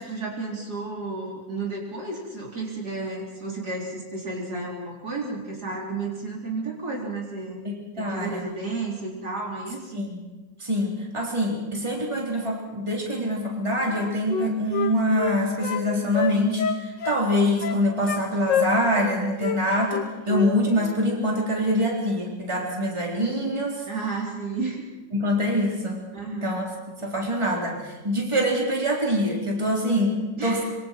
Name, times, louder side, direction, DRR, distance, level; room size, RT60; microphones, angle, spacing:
voice 1, 0.0-7.6 8.0-10.0 23.9-24.9 26.1-26.6 30.4-30.6, right 3 dB, 55° right, -2 dB, 4.3 m, -32 dB
voice 2, 7.6-8.4 9.9-10.2 10.6-23.8 25.1-26.1 26.3-26.7 27.0-30.6, equal, 15° right, -2 dB, 3.8 m, -25 dB
Wind instrument woodwind instrument, 13.9-15.8 16.1-17.2 17.6-18.2 18.5-19.1 19.4-19.6 19.9-20.5 20.8-21.0, left 8 dB, 75° left, 1.9 m, -27 dB
25.0 x 24.5 x 4.6 m, 1.1 s
omnidirectional pair, 2.0 m